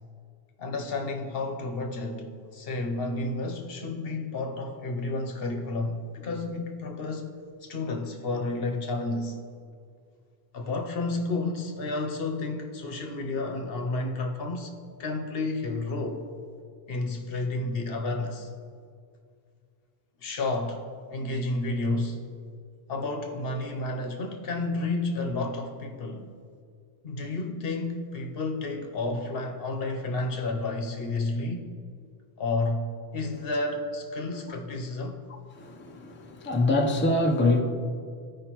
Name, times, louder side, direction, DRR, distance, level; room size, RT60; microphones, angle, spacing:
voice 1, 0.6-7.3 7.6-9.4 10.5-14.7 15.0-16.3 16.9-18.5 20.2-20.8 21.1-22.2 22.9-26.3 27.0-31.7 32.4-35.2, left 2 dB, 70° left, 3 dB, 1.0 m, -31 dB
voice 2, 35.6-37.6, left 2 dB, 15° left, 1 dB, 0.5 m, -24 dB
15.0 x 5.1 x 2.9 m, 2.2 s
omnidirectional pair, 1.0 m